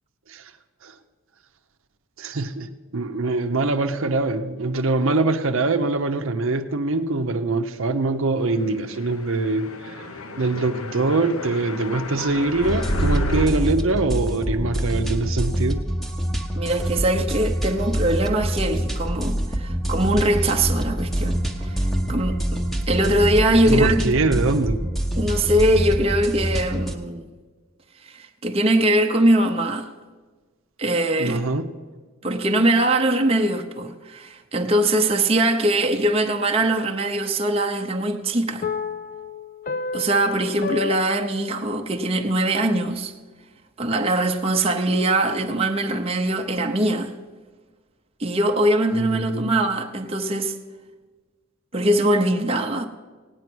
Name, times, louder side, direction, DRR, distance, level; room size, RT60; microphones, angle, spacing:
voice 1, 2.2-9.9 10.4-15.8 23.7-24.9 31.2-31.7 48.9-49.6, right 3 dB, 65° right, 0.8 m, -23 dB
sound 1, 9.0-13.5, equal, 80° left, 1.0 m, -30 dB
sound 2, 12.6-27.0, equal, ahead, 0.8 m, -25 dB
voice 2, 16.5-21.8 22.1-22.6 22.9-24.1 25.2-27.3 28.0-29.9 30.8-31.4 32.2-38.7 39.9-43.1 43.8-47.1 48.2-50.5 51.7-52.9, right 1 dB, 25° right, 0.7 m, -22 dB
sound 3, 38.6-42.1, left 5 dB, 40° left, 0.4 m, -31 dB
17.0 x 9.5 x 6.1 m
head